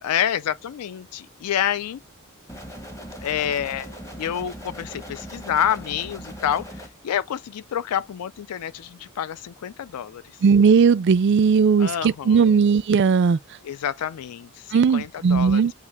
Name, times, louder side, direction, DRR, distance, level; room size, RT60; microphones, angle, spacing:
voice 1, 0.0-2.0 3.2-10.2 11.8-12.6 13.6-15.8, left 9 dB, 85° left, 0.4 m, -28 dB
sound 1, 2.5-6.9, equal, 15° left, 0.8 m, -39 dB
voice 2, 10.4-13.4 14.7-15.7, right 6 dB, 50° right, 0.3 m, -17 dB
8.2 x 2.8 x 2.3 m
head